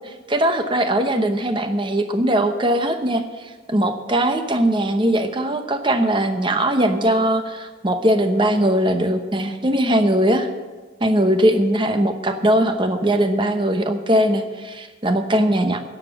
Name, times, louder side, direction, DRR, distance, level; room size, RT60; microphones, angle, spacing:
voice 1, 0.3-3.2 3.7-10.5 11.0-15.8, right 1 dB, 25° right, 7 dB, 0.9 m, -20 dB
10.5 x 7.2 x 9.1 m, 1.3 s
head